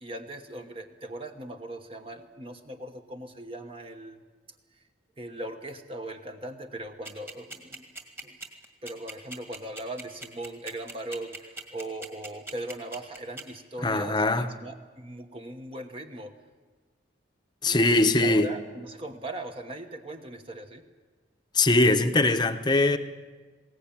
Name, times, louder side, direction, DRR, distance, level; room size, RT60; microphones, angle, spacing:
voice 1, 0.0-4.2 4.7-4.8 5.2-7.9 8.2-8.4 8.8-16.3 17.6-20.8, right 1 dB, 30° right, 1.2 m, -39 dB
sound 1, 7.1-13.4, right 2 dB, 15° right, 2.0 m, -39 dB
voice 2, 13.8-14.5 17.6-18.5 21.5-23.0, left 2 dB, 20° left, 0.9 m, -22 dB
21.0 x 18.0 x 8.8 m
head